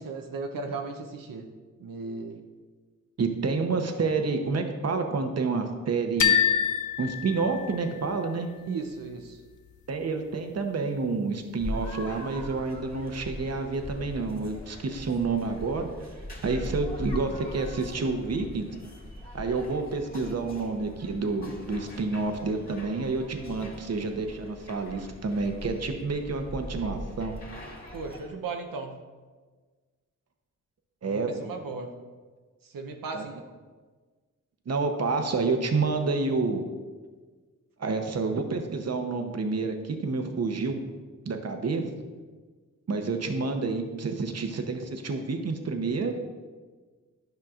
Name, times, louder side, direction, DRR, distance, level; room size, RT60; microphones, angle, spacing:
voice 1, 0.0-1.5 1.8-2.4 8.7-9.4 27.9-29.0 31.0-31.9 32.6-33.4, right 4 dB, 85° right, 3 dB, 0.7 m, -36 dB
voice 2, 3.2-6.4 7.0-8.5 9.9-15.9 16.4-18.7 19.3-27.4 31.0-31.5 33.1-33.2 34.7-36.6 37.8-40.8 41.3-41.8 42.9-46.1, right 4 dB, 50° right, 5 dB, 0.8 m, -29 dB
sound 1, 6.2-8.1, left 9 dB, 65° left, 0.6 m, -25 dB
sound 2, 11.6-28.3, left 1 dB, 25° left, 2.2 m, -41 dB
10.5 x 5.7 x 2.4 m, 1.4 s
cardioid pair, 60°, 32 cm